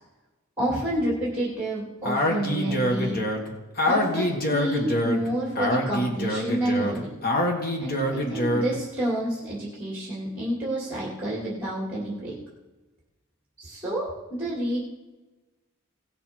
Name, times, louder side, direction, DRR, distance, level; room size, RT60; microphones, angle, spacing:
voice 1, 0.6-3.2 3.8-7.1 7.8-12.3 13.6-14.8, right 1 dB, 10° right, -5 dB, 2.5 m, -29 dB
Speech, 2.0-8.8, left 1 dB, 45° left, 1.6 m, -26 dB
17.5 x 6.6 x 4.5 m, 1.1 s
head